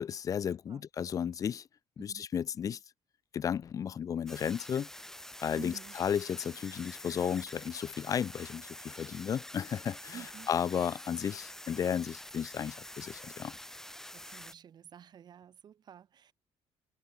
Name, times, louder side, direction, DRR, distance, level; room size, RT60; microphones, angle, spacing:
voice 1, 0.0-1.7 2.0-2.8 3.3-4.9 5.4-10.2 10.5-13.6, left 8 dB, 35° left, 0.4 m, -34 dB
sound 1, 4.3-14.5, left 1 dB, 5° left, 3.5 m, -47 dB
voice 2, 5.6-6.0 10.1-10.5 14.1-16.3, right 9 dB, 40° right, 2.3 m, -50 dB
cardioid pair, 155°, 11 cm